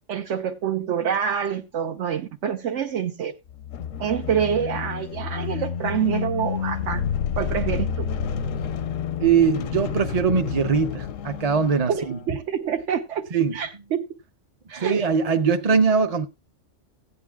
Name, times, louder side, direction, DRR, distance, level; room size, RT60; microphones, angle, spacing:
voice 1, 0.1-3.3 4.0-7.0 7.3-8.1 11.9-14.0 14.7-15.3, right 8 dB, 70° right, 1.2 m, -27 dB
sound 1, 3.5-12.3, left 7 dB, 85° left, 1.1 m, -29 dB
voice 2, 9.2-12.2 13.3-13.6 14.7-16.3, right 6 dB, 40° right, 0.7 m, -21 dB
16.5 x 9.4 x 2.3 m
omnidirectional pair, 1.3 m